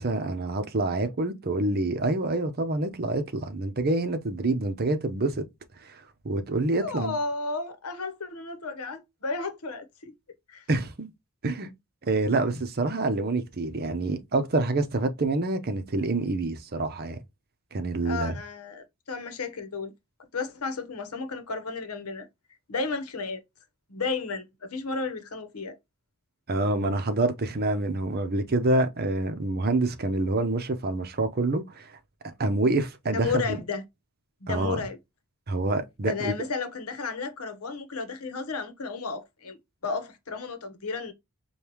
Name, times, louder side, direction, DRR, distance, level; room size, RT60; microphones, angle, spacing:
voice 1, 0.0-5.4 5.8-7.2 10.7-11.1 11.4-11.7 12.1-17.2 17.7-18.4 26.5-31.9 32.4-33.6 34.5-34.8 35.5-36.3, right 2 dB, 45° right, 0.7 m, -27 dB
voice 2, 6.8-10.1 10.5-10.6 18.0-19.9 20.3-22.3 22.7-23.4 23.9-25.8 33.1-33.8 34.4-35.0 36.0-39.6 39.8-41.1, left 4 dB, 85° left, 0.9 m, -33 dB
5.2 x 2.3 x 2.9 m
head